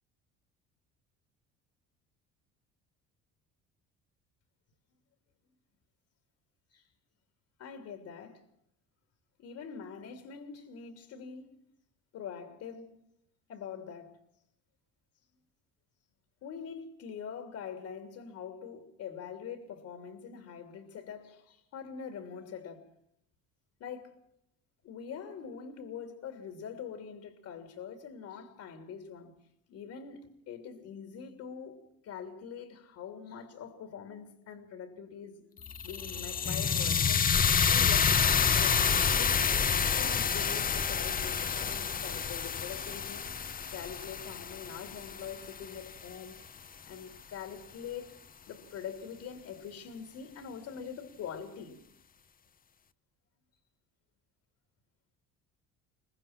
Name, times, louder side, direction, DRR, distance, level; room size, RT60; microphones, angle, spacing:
voice 1, 7.6-8.4 9.4-11.5 12.1-12.9 13.5-14.1 16.4-22.9 23.8-24.2 24.8-29.3 29.7-35.5 35.8-43.3 43.7-46.5 46.8-51.8, left 7 dB, 70° left, 3.1 m, -44 dB
sound 1, 35.6-45.8, left 6 dB, 30° left, 0.9 m, -28 dB
23.5 x 20.5 x 5.9 m
cardioid pair, 100°, 29 cm